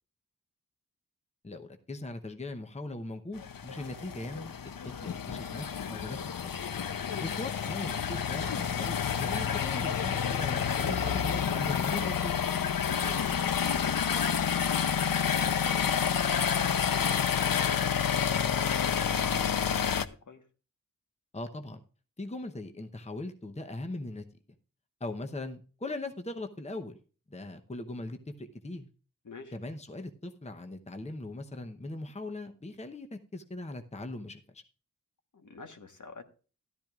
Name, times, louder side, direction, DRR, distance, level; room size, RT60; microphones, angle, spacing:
voice 1, 1.4-4.5 4.8-6.2 6.4-6.5 7.2-12.4 21.3-21.8 22.2-24.2 25.0-27.0 27.3-28.9 29.5-34.6, left 2 dB, 20° left, 0.8 m, -40 dB
sound 1, 3.4-20.1, left 7 dB, 75° left, 0.7 m, -29 dB
voice 2, 12.8-16.3 16.7-20.4 29.2-29.6 35.3-36.3, left 4 dB, 60° left, 1.4 m, -47 dB
13.5 x 12.0 x 2.4 m
wide cardioid pair, 85°, 35 cm